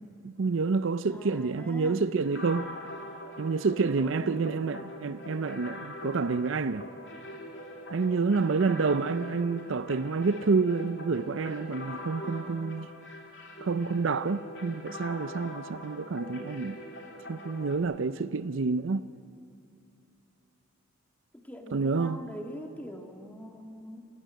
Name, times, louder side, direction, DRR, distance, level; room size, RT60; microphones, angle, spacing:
voice 1, 0.2-2.7 3.4-6.9 7.9-12.9 13.6-16.8 17.3-19.1 21.7-22.2, right 4 dB, 60° right, 0.5 m, -28 dB
voice 2, 1.1-2.0 3.8-4.4 21.3-24.1, equal, 5° left, 1.8 m, -43 dB
sound 1, 2.2-17.8, equal, 55° left, 3.0 m, -42 dB
26.5 x 18.0 x 9.2 m
head